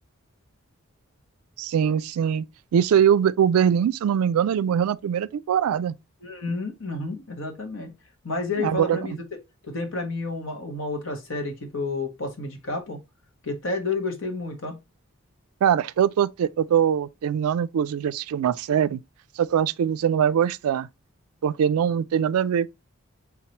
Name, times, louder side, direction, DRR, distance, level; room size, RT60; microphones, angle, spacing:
voice 1, 1.6-2.5 2.7-6.0 8.6-9.2 15.6-19.0 19.4-20.9 21.4-22.7, right 8 dB, 80° right, 0.3 m, -22 dB
voice 2, 6.2-7.9 8.2-9.1 9.7-13.0 13.4-14.8, left 3 dB, 60° left, 1.1 m, -30 dB
4.5 x 3.8 x 2.9 m
head